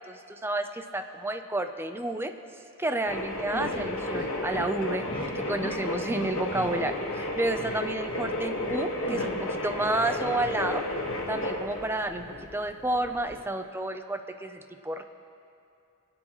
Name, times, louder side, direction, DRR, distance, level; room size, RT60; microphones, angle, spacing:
voice 1, 0.1-2.3 2.8-10.8 11.3-12.3 12.5-15.0, right 1 dB, 10° right, 7 dB, 0.6 m, -31 dB
sound 1, 3.0-13.4, left 1 dB, 85° left, 1.7 m, -33 dB
sound 2, 3.5-4.3 4.5-4.7 5.0-5.3 5.6-5.8 6.1-6.7 7.1-7.3 7.6-7.8 8.1-8.8 9.0-10.8 11.0-11.2, left 1 dB, 25° left, 1.9 m, -39 dB
25.0 x 8.9 x 3.1 m, 2.6 s
head